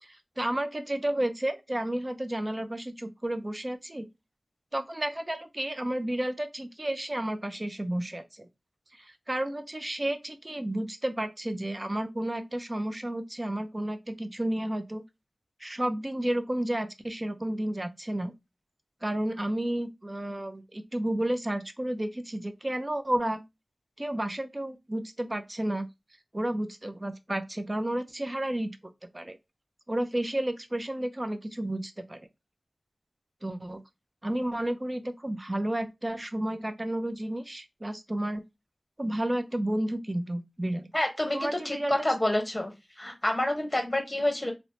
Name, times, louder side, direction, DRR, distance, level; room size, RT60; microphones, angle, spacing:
voice 1, 0.0-4.1 4.7-8.5 9.0-15.0 15.6-18.3 19.0-23.4 24.0-25.9 26.3-28.7 29.1-29.4 29.9-32.2 33.4-33.8 34.2-38.4 39.0-40.9 41.3-41.9, right 1 dB, 30° right, 0.4 m, -31 dB
voice 2, 40.9-42.7 43.0-44.5, left 1 dB, 25° left, 0.9 m, -28 dB
2.9 x 2.0 x 2.7 m
wide cardioid pair, 55°, 0 cm